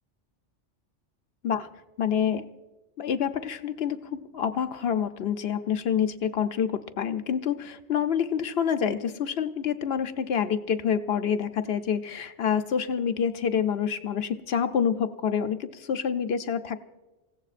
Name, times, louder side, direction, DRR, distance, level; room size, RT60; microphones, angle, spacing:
voice 1, 2.0-2.5 3.0-16.8, left 8 dB, 65° left, 8 dB, 0.8 m, -27 dB
27.0 x 16.0 x 2.5 m, 1.1 s
omnidirectional pair, 1.2 m